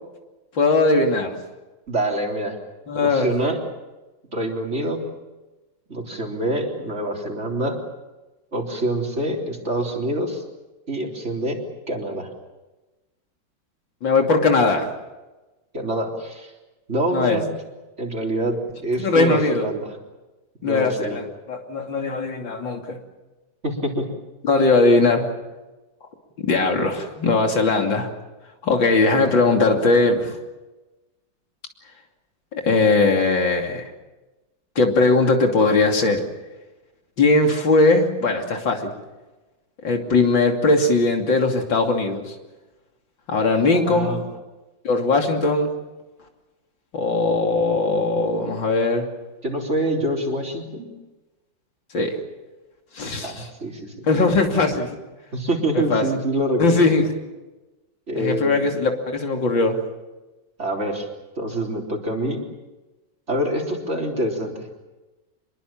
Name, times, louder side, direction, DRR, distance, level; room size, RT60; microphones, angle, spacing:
voice 1, 0.6-1.3 2.9-3.3 14.0-14.9 17.1-17.4 19.0-19.7 20.6-21.2 21.5-23.0 24.4-25.3 26.5-28.1 28.6-30.4 32.5-33.8 34.8-36.2 37.2-38.9 39.8-42.2 43.3-44.2 44.9-45.7 46.9-49.1 51.9-52.1 53.0-53.5 54.0-54.9 55.7-56.0 56.6-57.0 58.2-59.8, left 3 dB, 90° left, 3 dB, 3.5 m, -19 dB
voice 2, 1.9-2.6 3.0-3.6 4.3-5.0 5.9-7.8 8.5-10.4 10.9-11.6 11.9-12.3 15.7-16.5 16.9-17.5 18.0-19.9 20.6-21.2 23.6-24.1 43.7-44.2 49.4-50.9 53.2-53.9 55.3-57.0 58.1-58.7 60.6-61.1 61.4-62.4 63.3-64.8, right 1 dB, 35° right, 1 dB, 4.0 m, -25 dB
26.5 x 22.0 x 7.4 m, 1.1 s
omnidirectional pair, 2.0 m